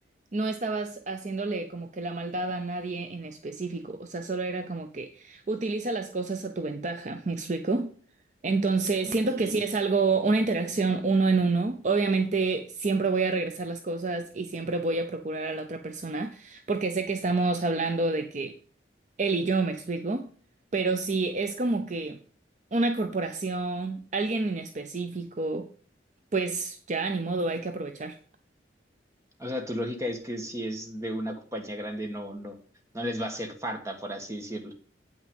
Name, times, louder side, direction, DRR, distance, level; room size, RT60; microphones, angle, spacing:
voice 1, 0.3-7.9 8.4-18.6 19.2-20.3 20.7-22.2 22.7-25.7 26.3-28.2, right 3 dB, 45° right, 0.6 m, -28 dB
voice 2, 9.0-9.6 29.4-32.6 32.9-34.7, equal, 15° right, 1.6 m, -34 dB
8.7 x 6.0 x 5.4 m
head